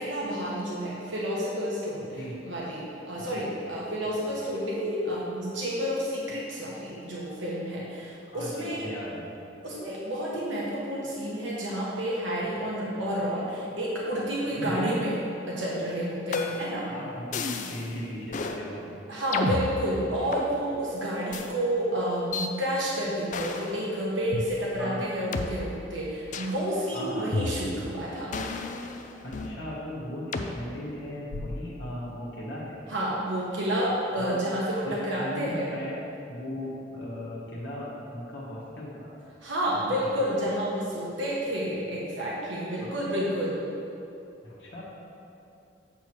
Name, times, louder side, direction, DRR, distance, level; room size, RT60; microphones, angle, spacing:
voice 1, 0.0-8.9 9.6-15.2 15.5-16.9 19.1-28.3 32.9-35.7 39.4-43.6, equal, 75° right, -5 dB, 1.1 m, -30 dB
voice 2, 3.2-3.5 4.0-4.2 8.3-9.3 14.6-15.0 16.8-19.0 20.2-20.4 24.8-25.1 26.9-27.3 29.2-32.8 34.1-34.4 34.8-39.1 40.0-40.3 42.8-43.0 44.4-44.8, left 1 dB, 65° left, -6 dB, 1.3 m, -37 dB
sound 1, 16.3-16.8 17.3-17.9 18.3-18.6 19.3-20.5 21.3-21.5 22.3-22.5 23.3-23.7 24.3-24.4 25.3-25.5 26.3-26.6 27.3-27.9 28.3-29.6 30.3-30.5 31.3-31.7, left 3 dB, 40° left, 0.4 m, -32 dB
8.1 x 3.1 x 5.9 m, 2.8 s
head